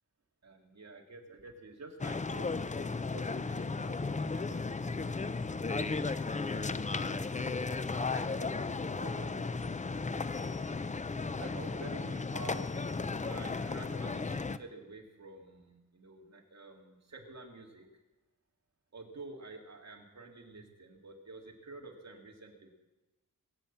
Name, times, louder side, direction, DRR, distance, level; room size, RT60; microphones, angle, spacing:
voice 1, 0.4-4.6 4.9-5.1 5.7-10.6 11.4-12.7 13.3-17.8 18.9-22.7, right 3 dB, 50° right, 1 dB, 2.7 m, -50 dB
sound 1, 2.0-14.6, left 4 dB, 20° left, 0.5 m, -35 dB
22.0 x 8.7 x 7.4 m, 1.1 s
wide cardioid pair, 140°, 34 cm